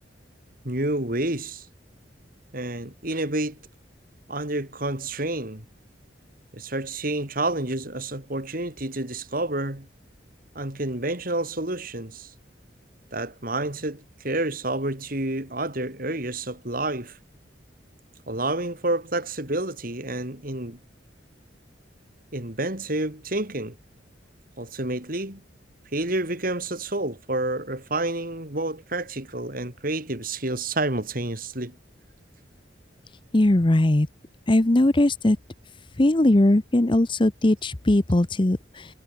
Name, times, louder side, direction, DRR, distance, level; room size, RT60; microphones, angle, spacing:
voice 1, 0.6-1.7 2.5-3.6 4.3-5.7 6.5-9.9 10.6-12.3 13.1-17.2 18.3-20.8 22.3-23.8 24.6-25.4 25.9-31.8, right 2 dB, 50° right, 3.8 m, -29 dB
voice 2, 33.3-34.1 34.5-35.4 36.0-38.9, left 1 dB, 25° left, 0.8 m, -20 dB
head